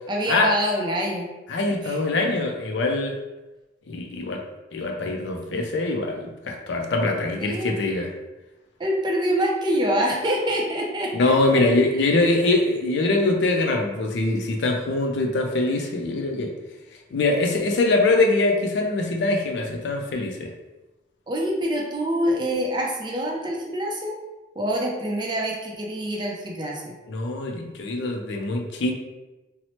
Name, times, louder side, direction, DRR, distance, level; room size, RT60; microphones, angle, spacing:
voice 1, 0.1-1.3 1.8-2.0 7.4-7.8 8.8-11.6 21.3-24.2 24.6-26.9, equal, 25° right, -1 dB, 0.4 m, -25 dB
voice 2, 1.5-3.2 3.9-4.4 4.7-8.1 11.1-16.5 17.1-20.5 27.1-28.9, left 2 dB, 65° left, 2 dB, 0.4 m, -23 dB
2.9 x 2.0 x 2.9 m, 1.1 s
head